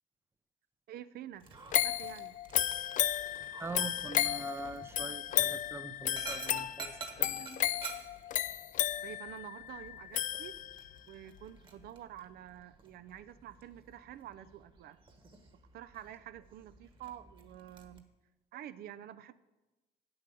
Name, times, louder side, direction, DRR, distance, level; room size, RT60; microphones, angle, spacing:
voice 1, 0.9-1.5 1.8-2.3 9.0-10.6 11.1-15.0 15.7-18.0 18.5-19.3, right 11 dB, 65° right, 13 dB, 0.5 m, -48 dB
Dog, 1.4-18.0, right 4 dB, 30° right, 1.3 m, -51 dB
sound 1, 1.7-11.0 11.4-11.5, left 12 dB, 50° left, 0.4 m, -33 dB
voice 2, 3.6-7.7, right 4 dB, 15° right, 12 dB, 0.5 m, -44 dB
8.4 x 7.8 x 6.8 m, 1.1 s
cardioid pair, 110°, 17 cm